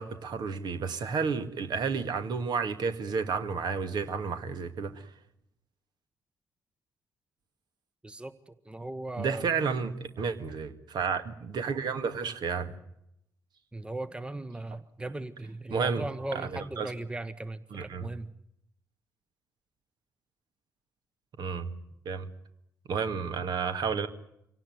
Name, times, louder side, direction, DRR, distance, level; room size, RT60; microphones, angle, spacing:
voice 1, 0.0-4.9 9.2-12.7 15.7-16.0 16.8-16.9 17.7-18.1 21.4-21.7 22.1-22.3 22.9-24.1, right 5 dB, 50° right, 9 dB, 2.2 m, -31 dB
voice 2, 8.0-9.5 13.7-18.3, right 2 dB, 10° right, 14 dB, 1.2 m, -38 dB
26.5 x 18.0 x 9.4 m, 0.78 s
figure-of-eight pair, 45°, 9 cm